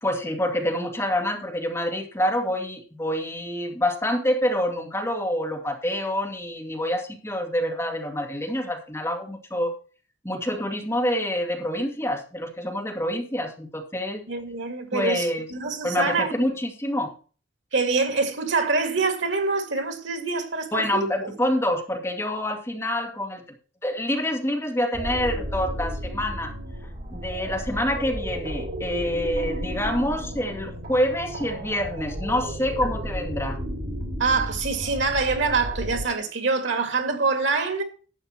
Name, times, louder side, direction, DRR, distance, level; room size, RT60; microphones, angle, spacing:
voice 1, 0.0-9.7 10.2-14.2 14.9-15.5 15.8-17.1 20.7-23.4 23.8-26.5 27.1-33.6, left 1 dB, 15° left, 2.1 m, -27 dB
voice 2, 14.3-15.2 15.5-16.5 17.7-21.3 34.2-37.8, right 4 dB, 85° right, 2.1 m, -25 dB
sound 1, 24.9-36.0, equal, 55° right, 3.9 m, -33 dB
12.0 x 7.9 x 4.4 m
head